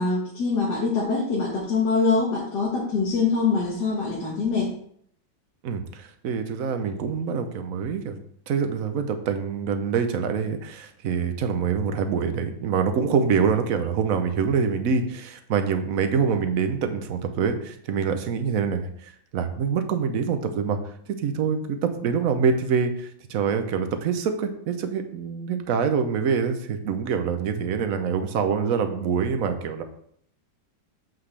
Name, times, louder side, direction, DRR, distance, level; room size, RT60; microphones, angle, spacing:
voice 1, 0.0-4.7, left 4 dB, 65° left, -4 dB, 2.0 m, -24 dB
voice 2, 5.6-8.2 8.5-20.8 21.1-29.8, right 6 dB, 60° right, 7 dB, 1.1 m, -25 dB
7.4 x 5.9 x 3.3 m, 0.65 s
omnidirectional pair, 1.9 m